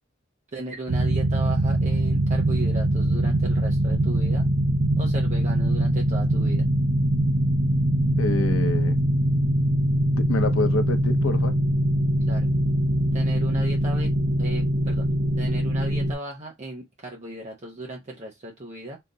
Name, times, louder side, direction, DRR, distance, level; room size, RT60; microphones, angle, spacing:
voice 1, 0.5-4.5 5.0-6.6 12.3-12.5 13.1-14.1 14.4-15.1 15.4-19.0, right 2 dB, 35° right, 0.8 m, -36 dB
sound 1, 0.9-16.1, right 1 dB, 70° right, 0.7 m, -22 dB
voice 2, 8.2-9.0 10.1-11.5, left 2 dB, 80° left, 0.7 m, -27 dB
3.8 x 2.7 x 3.8 m
head